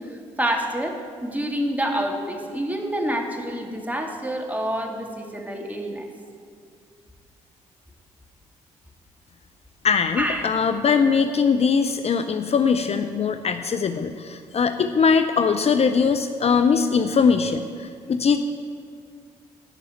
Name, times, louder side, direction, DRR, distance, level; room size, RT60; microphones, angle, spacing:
voice 1, 0.0-6.1 10.2-10.5, equal, 10° right, 2 dB, 2.1 m, -27 dB
voice 2, 9.8-18.4, left 5 dB, 45° left, 8 dB, 0.6 m, -21 dB
11.0 x 5.5 x 8.7 m, 2.2 s
hypercardioid pair, 45°, 15 cm